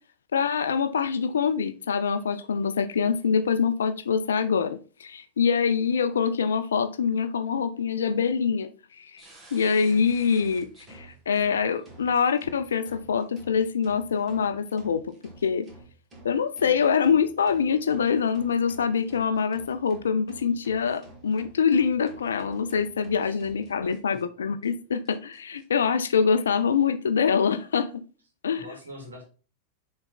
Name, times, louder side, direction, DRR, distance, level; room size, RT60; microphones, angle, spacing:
voice 1, 0.3-8.7 9.0-9.2 9.5-15.1 15.4-15.7 16.2-28.0 28.4-28.7, left 6 dB, 65° left, 0.6 m, -25 dB
sound 1, 9.2-24.2 24.6-24.7 25.0-25.6, right 2 dB, 25° right, 2.5 m, -50 dB
voice 2, 23.8-24.2 28.6-29.2, equal, 75° right, 2.7 m, -44 dB
6.8 x 4.4 x 4.1 m
figure-of-eight pair, 90°, 0 cm